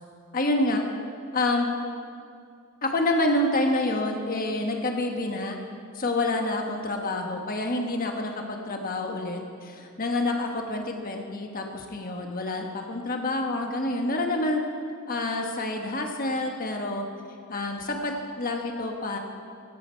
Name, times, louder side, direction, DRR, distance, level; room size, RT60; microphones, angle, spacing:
voice 1, 0.3-0.8 1.3-1.7 2.8-5.6 5.9-14.6 15.1-17.0 17.5-19.2, left 2 dB, 40° left, 3 dB, 1.3 m, -28 dB
16.0 x 11.0 x 4.5 m, 2.3 s
head